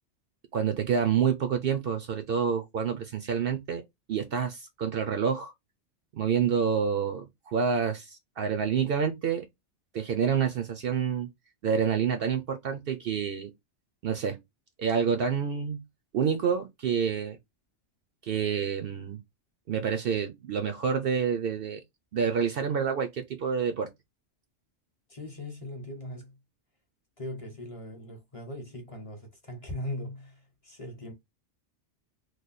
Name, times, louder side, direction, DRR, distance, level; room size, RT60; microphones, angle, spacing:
voice 1, 0.5-3.8 4.1-5.5 6.1-9.4 9.9-11.3 11.6-13.5 14.0-14.4 14.8-15.8 16.1-17.4 18.2-19.2 19.7-21.8 22.1-23.9, right 7 dB, 60° right, 0.7 m, -28 dB
voice 2, 25.1-26.4 27.2-31.1, left 1 dB, 30° left, 0.8 m, -39 dB
3.1 x 2.1 x 4.0 m
omnidirectional pair, 1.2 m